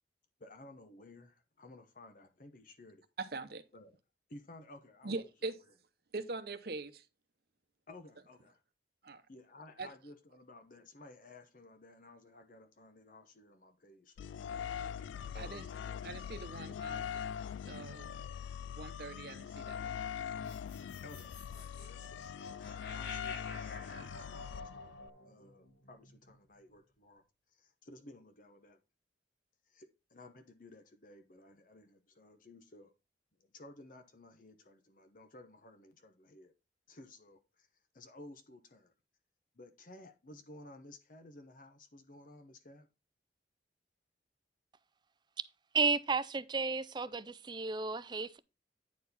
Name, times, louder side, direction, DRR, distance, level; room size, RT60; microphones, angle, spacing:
voice 1, 0.4-3.0 3.7-4.0 4.3-5.5 7.9-8.6 9.3-14.4 15.3-15.7 21.0-22.3 22.9-24.9 25.2-28.8 29.7-32.9 33.4-36.5 36.9-38.9 39.5-42.9, left 2 dB, 45° left, 0.9 m, -55 dB
voice 2, 3.2-3.6 5.0-5.6 6.1-7.1 9.0-9.2 9.8-9.9 14.8-14.9 15.3-15.6 16.0-17.2 17.7-18.3 18.7-20.0, right 3 dB, 55° right, 0.9 m, -42 dB
sound 1, 14.2-25.1, left 8 dB, 85° left, 0.3 m, -42 dB
sound 2, 20.4-26.8, left 3 dB, 65° left, 2.4 m, -50 dB
voice 3, 45.7-48.4, right 4 dB, 25° right, 0.4 m, -33 dB
9.5 x 4.7 x 4.1 m
head